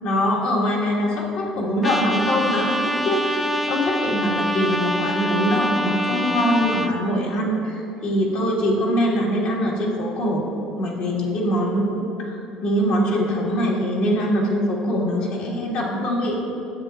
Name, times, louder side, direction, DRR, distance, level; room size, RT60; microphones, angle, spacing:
voice 1, 0.0-10.4 10.8-16.4, equal, 70° left, -4 dB, 1.9 m, -23 dB
Trumpet, 1.8-6.9, equal, 5° right, 0.5 m, -25 dB
10.5 x 7.8 x 2.5 m, 2.8 s
supercardioid pair, 85°, 2 cm